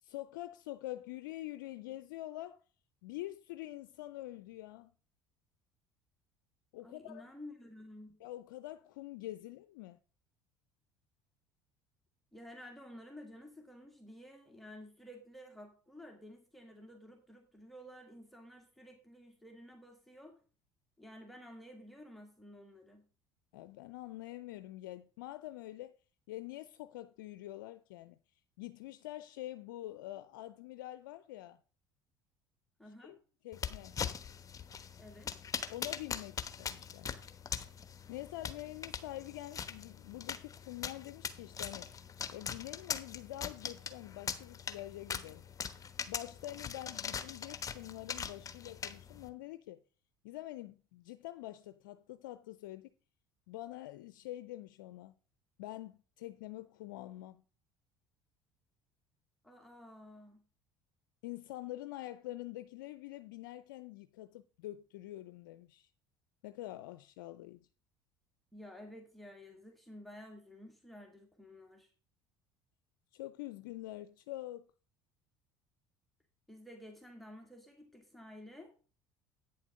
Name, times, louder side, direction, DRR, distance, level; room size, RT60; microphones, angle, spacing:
voice 1, 0.0-2.6 3.0-4.9 6.7-7.2 8.2-10.0 23.5-26.0 26.3-28.2 28.6-31.6 33.0-33.2 33.4-34.0 35.7-37.1 38.1-41.9 42.3-45.4 46.1-49.8 50.2-52.9 53.5-55.1 55.6-57.4 61.2-65.9 66.4-67.7 73.1-74.7, left 16 dB, 85° left, 0.4 m, -46 dB
voice 2, 6.8-8.2 12.3-20.4 21.0-23.1 32.8-33.2 35.0-35.4 59.4-60.4 68.5-71.9 76.5-78.7, left 1 dB, ahead, 1.9 m, -52 dB
sound 1, 33.5-49.3, left 7 dB, 30° left, 1.1 m, -42 dB
9.0 x 7.3 x 5.1 m
hypercardioid pair, 80°, 11 cm